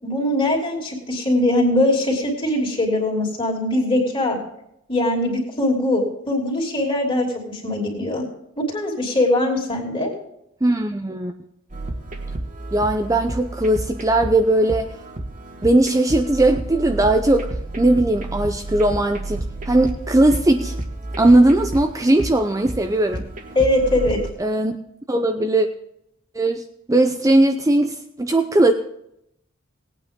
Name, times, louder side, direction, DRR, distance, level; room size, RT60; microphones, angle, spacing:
voice 1, 0.0-4.4 4.9-8.2 8.6-10.1 23.5-24.2, left 1 dB, 25° left, 0 dB, 3.1 m, -21 dB
voice 2, 10.6-11.3 12.7-14.9 15.6-17.5 17.8-20.7 21.2-23.3 24.4-24.8 25.1-25.7 26.3-28.7, right 1 dB, 15° right, 5 dB, 0.5 m, -18 dB
sound 1, 11.7-24.3, right 2 dB, 40° right, 1.7 m, -31 dB
18.5 x 9.0 x 3.7 m, 0.77 s
head